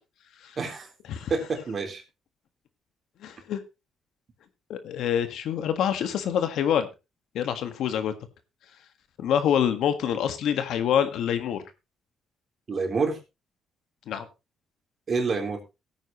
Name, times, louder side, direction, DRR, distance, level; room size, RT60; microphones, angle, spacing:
voice 1, 0.6-0.9 1.3-2.0 12.7-13.2 15.1-15.6, right 4 dB, 45° right, 3 dB, 3.7 m, -27 dB
voice 2, 3.2-3.6 4.7-6.9 7.3-8.1 9.2-11.6 14.1-14.3, left 9 dB, 80° left, 9 dB, 1.6 m, -26 dB
16.5 x 9.2 x 3.0 m, 0.27 s
cardioid pair, 90°, 0 cm